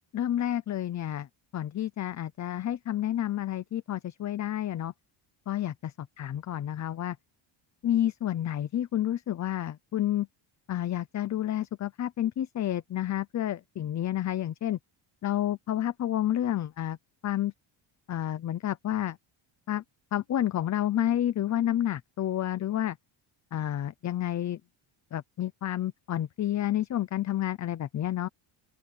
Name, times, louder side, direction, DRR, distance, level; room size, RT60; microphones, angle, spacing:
voice 1, 0.1-1.3 1.5-4.9 5.5-7.2 7.8-10.3 10.7-14.8 15.2-17.0 17.2-17.5 18.1-19.2 19.7-19.8 20.1-23.0 23.5-24.6 25.1-28.3, left 12 dB, 35° left, 0.6 m, -30 dB
open air
cardioid pair, 170°, 49 cm